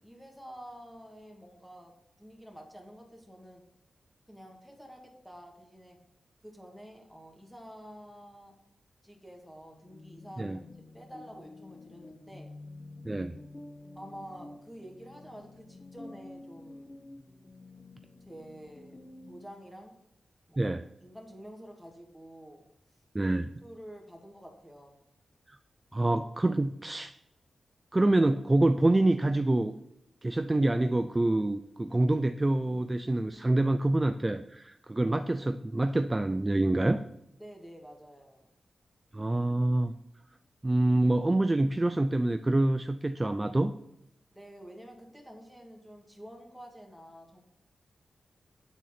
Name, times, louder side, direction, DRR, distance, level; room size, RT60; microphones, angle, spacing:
voice 1, 0.0-3.6 4.3-6.0 6.4-8.5 9.0-10.6 10.9-12.5 13.9-16.9 18.2-20.0 20.5-22.6 23.6-24.9 37.4-38.4 44.3-47.4, equal, 5° left, 1 dB, 2.0 m, -49 dB
sound 1, 9.7-19.7, left 2 dB, 35° left, 0.8 m, -49 dB
voice 2, 20.6-20.9 23.1-23.5 25.5-25.6 25.9-27.1 27.9-29.7 30.2-37.0 39.1-39.9 40.6-43.7, right 2 dB, 20° right, 8 dB, 0.4 m, -26 dB
9.2 x 4.0 x 5.9 m, 0.82 s
wide cardioid pair, 85°, 0 cm